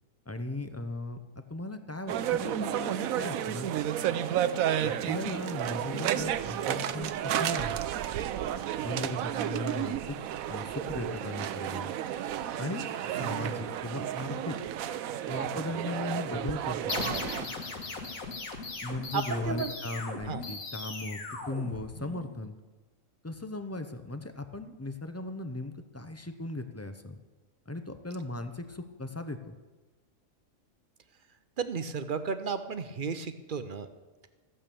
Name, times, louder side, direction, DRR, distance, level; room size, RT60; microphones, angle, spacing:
voice 1, 0.3-1.2 1.5-3.7 4.3-4.4 4.8-7.8 8.8-10.2 10.5-11.9 12.6-14.6 15.3-17.1 18.8-21.2 21.5-22.6 23.2-27.2 27.7-29.5, left 2 dB, 20° left, 8 dB, 0.4 m, -37 dB
sound 1, 2.1-17.5, right 10 dB, 85° right, 1.0 m, -32 dB
sound 2, 16.9-22.3, left 3 dB, 75° left, 2.0 m, -38 dB
voice 2, 19.1-19.7 20.3-20.4 31.6-33.9, right 5 dB, 45° right, 10 dB, 0.8 m, -33 dB
14.5 x 8.8 x 6.9 m, 1.3 s
omnidirectional pair, 1.5 m